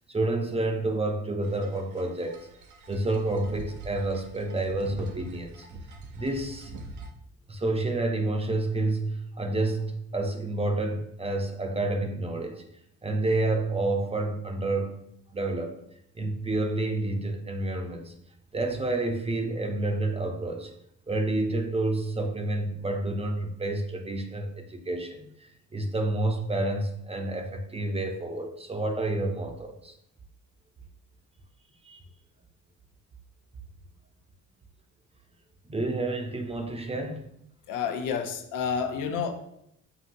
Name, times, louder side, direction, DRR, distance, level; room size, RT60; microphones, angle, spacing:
voice 1, 0.1-2.4 2.9-5.7 6.1-6.7 7.5-12.7 13.0-15.0 15.3-15.7 16.1-18.1 18.5-20.7 21.1-29.9 31.8-32.0 35.6-37.3, right 2 dB, 20° right, 4 dB, 0.6 m, -29 dB
sound 1, 1.4-7.1, right 3 dB, 75° right, 0.6 m, -44 dB
voice 2, 37.7-39.3, left 6 dB, 90° left, 6 dB, 0.6 m, -29 dB
5.7 x 2.6 x 2.6 m, 0.75 s
cardioid pair, 90°, 30 cm